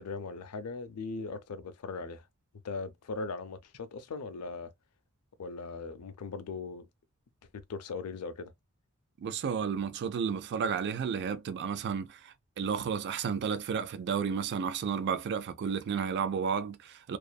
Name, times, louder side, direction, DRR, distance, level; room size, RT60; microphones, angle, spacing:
voice 1, 0.0-2.2 2.6-4.7 5.4-6.9 7.5-8.5, left 4 dB, 85° left, 0.5 m, -39 dB
voice 2, 9.2-17.2, right 6 dB, 50° right, 0.3 m, -32 dB
2.5 x 2.4 x 2.2 m
head